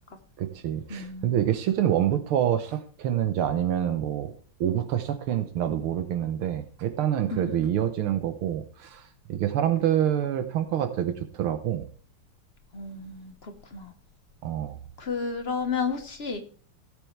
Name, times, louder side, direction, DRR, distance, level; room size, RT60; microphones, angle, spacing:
voice 1, 0.4-4.3 4.6-11.9 14.4-14.8, right 10 dB, 75° right, 1.8 m, -27 dB
voice 2, 0.9-1.4 7.3-7.6 12.7-13.9 15.0-16.4, left 5 dB, 40° left, 1.0 m, -32 dB
17.5 x 6.8 x 3.2 m
omnidirectional pair, 2.4 m